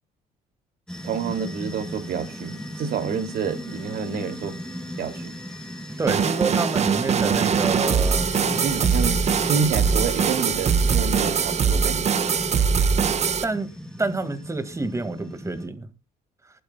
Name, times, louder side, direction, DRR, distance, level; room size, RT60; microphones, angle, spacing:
sound 1, 0.9-15.7, equal, 5° left, 3.2 m, -35 dB
voice 1, 1.0-4.6 5.0-5.3 8.4-12.3, right 6 dB, 65° right, 2.5 m, -28 dB
voice 2, 6.0-8.3 13.4-13.7 14.0-15.9, right 3 dB, 15° right, 1.8 m, -28 dB
Organ, 6.1-11.8, left 6 dB, 85° left, 2.7 m, -44 dB
sound 2, 6.1-13.4, right 6 dB, 40° right, 1.3 m, -22 dB
24.0 x 11.5 x 2.2 m
cardioid pair, 110°, 17 cm